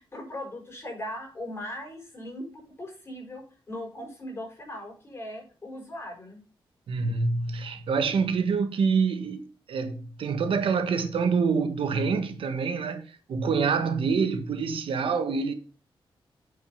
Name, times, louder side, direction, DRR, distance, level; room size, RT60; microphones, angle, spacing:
voice 1, 0.0-6.4, left 1 dB, 25° left, 5.6 m, -39 dB
voice 2, 6.9-15.5, right 5 dB, 75° right, 1.4 m, -26 dB
9.0 x 5.8 x 5.6 m
wide cardioid pair, 140°, 9 cm